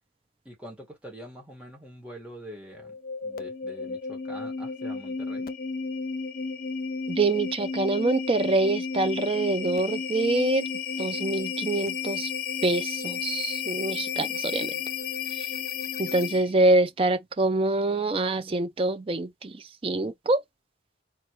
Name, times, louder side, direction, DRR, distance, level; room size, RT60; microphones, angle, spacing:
voice 1, 0.4-2.9 3.2-5.5, equal, 5° right, 1.7 m, -44 dB
sound 1, 2.7-16.6, left 5 dB, 50° left, 0.5 m, -33 dB
voice 2, 7.1-10.6 11.0-12.3 12.6-14.7 16.0-19.5 19.8-20.4, right 2 dB, 30° right, 0.5 m, -25 dB
4.1 x 2.9 x 3.0 m
head